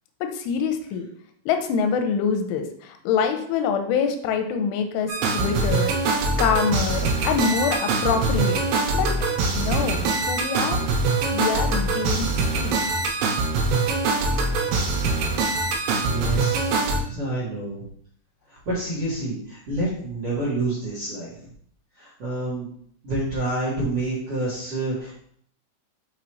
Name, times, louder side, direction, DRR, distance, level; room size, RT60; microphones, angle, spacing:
voice 1, 0.2-1.1 1.5-8.6 8.9-9.1 9.6-10.8 11.3-12.3 12.5-12.9, left 6 dB, 85° left, 6 dB, 3.1 m, -25 dB
sound 1, 5.1-17.0, right 3 dB, 85° right, 3.5 m, -23 dB
voice 2, 16.0-17.8 18.5-21.4 22.0-22.7 23.0-25.1, right 2 dB, 55° right, -10 dB, 1.8 m, -28 dB
6.2 x 5.6 x 3.1 m, 0.64 s
omnidirectional pair, 5.5 m